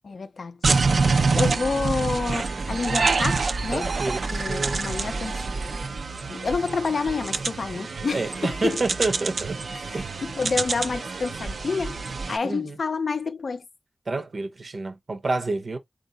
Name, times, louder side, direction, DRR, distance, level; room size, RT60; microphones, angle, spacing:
voice 1, 0.0-0.6 1.4-3.9 4.3-5.4 6.3-8.8 9.7-12.0 12.3-13.6, left 4 dB, 80° left, 0.4 m, -28 dB
sound 1, 0.6-12.4, right 4 dB, 85° right, 0.4 m, -26 dB
voice 2, 0.7-1.0 3.7-4.8 8.1-9.6 9.9-10.2 12.4-12.8 14.1-15.8, right 3 dB, 70° right, 0.8 m, -29 dB
3.8 x 2.5 x 3.9 m
cardioid pair, 50°, 0 cm